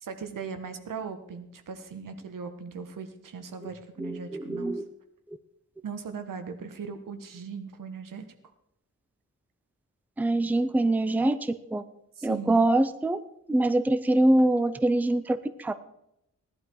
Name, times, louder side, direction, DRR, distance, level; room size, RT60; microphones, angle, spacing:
voice 1, 0.0-4.8 5.8-8.3 12.1-12.7, right 5 dB, 85° right, 8 dB, 1.5 m, -39 dB
voice 2, 4.0-4.8 10.2-11.8 12.2-13.2 13.5-15.7, right 2 dB, 5° right, 12 dB, 0.5 m, -24 dB
17.5 x 11.5 x 4.7 m, 0.80 s
wide cardioid pair, 175°, 32 cm